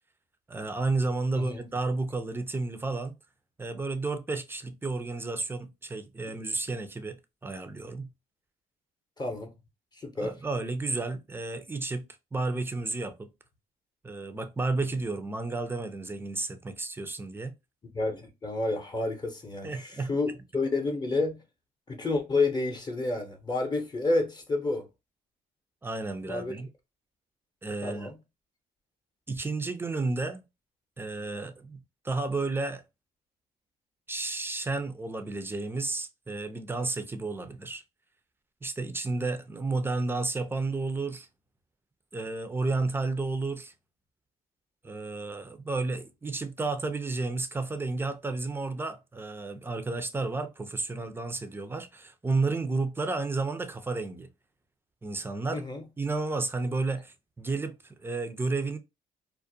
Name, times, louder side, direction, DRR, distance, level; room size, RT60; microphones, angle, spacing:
voice 1, 0.5-3.1 3.6-7.2 7.4-8.1 10.2-12.0 12.3-13.3 14.0-17.5 19.6-20.1 25.8-26.7 27.6-28.1 29.3-30.4 31.0-32.8 34.1-37.8 38.6-41.3 42.1-43.7 44.8-54.3 55.0-55.6 56.0-58.8, right 3 dB, 15° right, 0.4 m, -32 dB
voice 2, 9.2-9.5 9.9-10.3 17.9-21.4 21.9-24.8 26.3-26.6 27.8-28.2 55.5-55.8, left 3 dB, 25° left, 0.7 m, -30 dB
2.4 x 2.1 x 2.6 m
cardioid pair, 90°, 17 cm